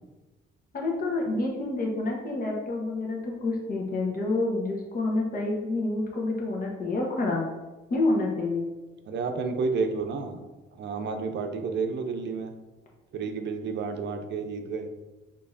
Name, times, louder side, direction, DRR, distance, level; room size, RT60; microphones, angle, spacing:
voice 1, 0.7-7.4 7.9-8.7, left 2 dB, 45° left, -1 dB, 1.1 m, -28 dB
voice 2, 9.1-10.4 10.7-12.5 13.1-14.9, right 4 dB, 60° right, 6 dB, 0.5 m, -30 dB
4.6 x 2.9 x 2.6 m, 1.1 s
cardioid pair, 90°, 20 cm